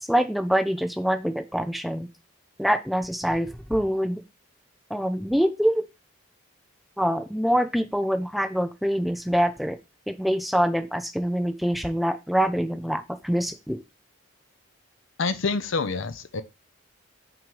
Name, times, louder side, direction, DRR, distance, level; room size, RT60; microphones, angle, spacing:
voice 1, 0.0-2.1 2.6-4.2 4.9-5.9 7.0-9.8 10.1-13.8, equal, ahead, 0.4 m, -25 dB
voice 2, 15.2-16.4, left 4 dB, 75° left, 0.7 m, -27 dB
5.9 x 3.1 x 5.4 m
head